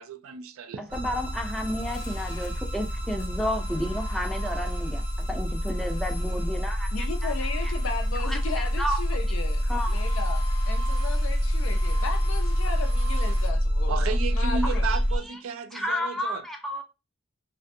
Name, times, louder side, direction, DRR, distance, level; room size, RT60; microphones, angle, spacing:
voice 1, 0.0-0.9 13.9-16.4, right 5 dB, 85° right, 0.4 m, -33 dB
voice 2, 0.8-7.3 7.6-7.7 8.2-9.0 9.7-10.0 14.6-15.0 15.7-16.8, equal, ahead, 0.3 m, -32 dB
sound 1, 0.9-15.2, equal, 30° right, 0.7 m, -27 dB
sound 2, 1.1-13.5, equal, 90° left, 0.9 m, -44 dB
voice 3, 6.9-14.9, left 5 dB, 70° left, 0.5 m, -36 dB
2.5 x 2.1 x 2.5 m
head